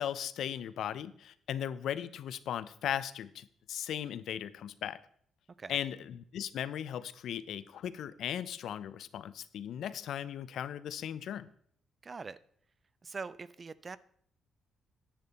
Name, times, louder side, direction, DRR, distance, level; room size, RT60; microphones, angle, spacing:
voice 1, 0.0-5.0 5.7-11.5, left 10 dB, 65° left, 16 dB, 0.5 m, -37 dB
voice 2, 12.0-12.4 13.0-14.0, right 4 dB, 25° right, 18 dB, 0.4 m, -42 dB
10.5 x 8.5 x 4.1 m, 0.62 s
cardioid pair, 155°, 0 cm